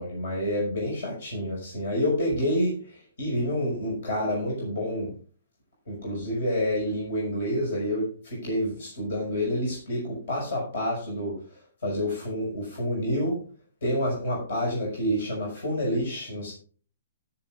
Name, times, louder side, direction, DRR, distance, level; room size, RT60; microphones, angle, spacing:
voice 1, 0.0-5.1 5.9-11.4 11.8-13.4 13.8-16.5, equal, 70° left, -3 dB, 6.0 m, -28 dB
19.0 x 7.5 x 2.5 m, 0.41 s
hypercardioid pair, 130°, 0 cm